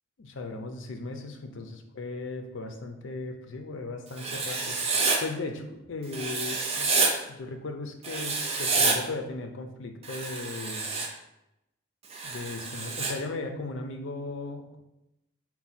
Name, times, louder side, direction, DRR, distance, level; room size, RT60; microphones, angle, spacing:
voice 1, 0.2-4.8 5.2-7.0 7.3-10.9 12.2-14.8, left 3 dB, 65° left, 5 dB, 0.5 m, -37 dB
Writing, 4.2-5.2 6.1-7.1 8.0-9.0 10.0-11.1 12.1-13.1, right 4 dB, 30° right, 0.5 m, -28 dB
4.6 x 2.2 x 4.1 m, 0.90 s
head